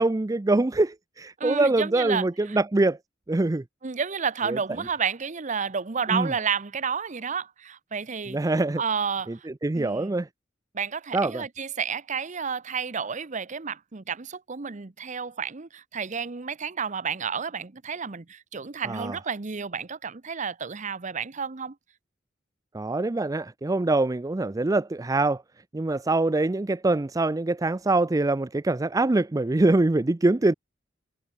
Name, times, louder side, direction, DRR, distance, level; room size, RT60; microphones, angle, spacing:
voice 1, 0.0-3.0 3.3-3.6 4.5-4.6 6.1-6.3 8.3-8.8 9.3-10.3 11.1-11.5 18.8-19.2 22.7-25.4 25.7-30.5, right 2 dB, 20° right, 0.5 m, -24 dB
voice 2, 1.4-2.6 3.8-8.4 8.8-9.5 9.7-10.1 10.7-21.8, right 6 dB, 40° right, 0.8 m, -31 dB
head